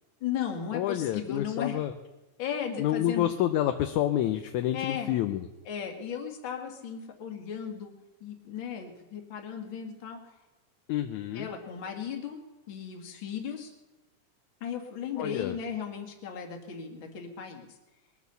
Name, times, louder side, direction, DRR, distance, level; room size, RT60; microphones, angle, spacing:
voice 1, 0.2-1.8 2.4-3.3 4.7-5.1 5.7-7.9 8.2-10.3 11.3-12.4 12.7-13.7 14.6-17.7, left 8 dB, 45° left, 3 dB, 2.3 m, -36 dB
voice 2, 0.7-1.9 2.8-5.5 10.9-11.5 15.2-15.6, left 12 dB, 75° left, 7 dB, 2.0 m, -28 dB
21.5 x 8.3 x 6.9 m, 1.1 s
omnidirectional pair, 3.6 m